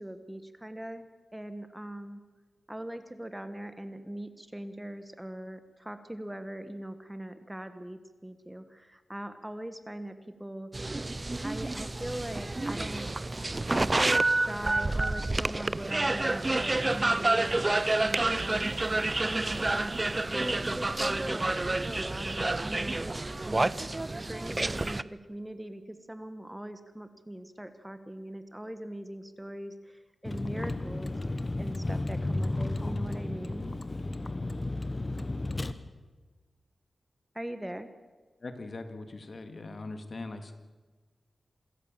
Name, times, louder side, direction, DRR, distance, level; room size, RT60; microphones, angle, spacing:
voice 1, 0.0-2.2 2.7-10.9 11.4-13.1 13.7-23.2 23.5-31.1 31.6-33.7 37.3-37.9, right 1 dB, 10° right, 10 dB, 1.3 m, -41 dB
sound 1, 10.7-25.0, right 2 dB, 25° right, 0.5 m, -29 dB
Vehicle, 30.2-35.7, left 2 dB, 30° left, 1.1 m, -33 dB
voice 2, 38.4-40.5, left 2 dB, 50° left, 8 dB, 2.0 m, -41 dB
27.0 x 14.0 x 7.5 m, 1.3 s
wide cardioid pair, 120°, 0 cm